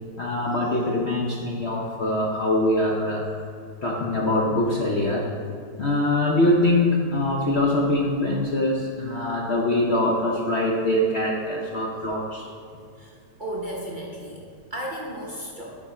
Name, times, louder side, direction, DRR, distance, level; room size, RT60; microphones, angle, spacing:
voice 1, 0.2-3.3 3.8-5.3 5.8-12.5, left 1 dB, 55° left, -2 dB, 0.7 m, -23 dB
voice 2, 13.0-15.7, right 1 dB, 40° right, -3 dB, 0.7 m, -34 dB
12.5 x 4.5 x 4.3 m, 2.3 s
omnidirectional pair, 1.8 m